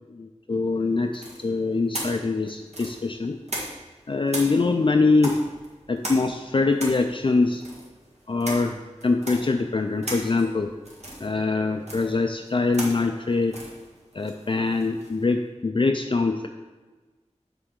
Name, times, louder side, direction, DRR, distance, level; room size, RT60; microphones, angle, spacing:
voice 1, 0.1-3.4 4.1-5.4 5.9-7.6 8.3-8.8 9.0-10.7 11.2-13.6 14.1-16.5, left 3 dB, 45° left, 4 dB, 0.4 m, -23 dB
sound 1, 1.1-4.0 4.3-15.2, right 1 dB, 65° right, 1.8 m, -37 dB
7.4 x 3.4 x 6.3 m, 1.3 s
wide cardioid pair, 50°, 12 cm